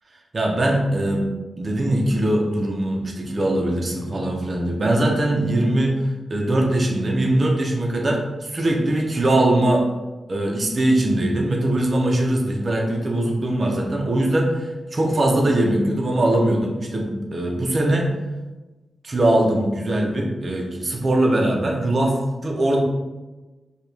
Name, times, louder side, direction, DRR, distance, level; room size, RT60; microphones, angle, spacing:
voice 1, 0.3-1.3 1.6-6.0 6.3-9.9 10.3-18.1 19.0-22.8, right 1 dB, 40° right, 0 dB, 0.7 m, -21 dB
4.9 x 2.4 x 3.3 m, 1.2 s
wide cardioid pair, 120°, 0 cm